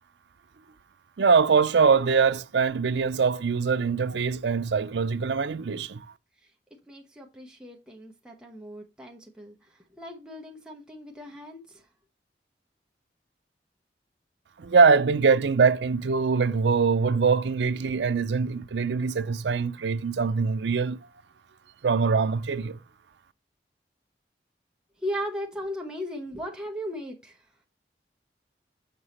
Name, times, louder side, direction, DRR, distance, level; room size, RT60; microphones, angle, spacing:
voice 1, 1.2-6.0 14.6-21.0 21.8-22.8, right 5 dB, 85° right, 0.5 m, -23 dB
voice 2, 6.9-9.6 10.0-11.8 25.0-27.4, equal, 5° right, 1.0 m, -37 dB
6.8 x 4.7 x 4.2 m
head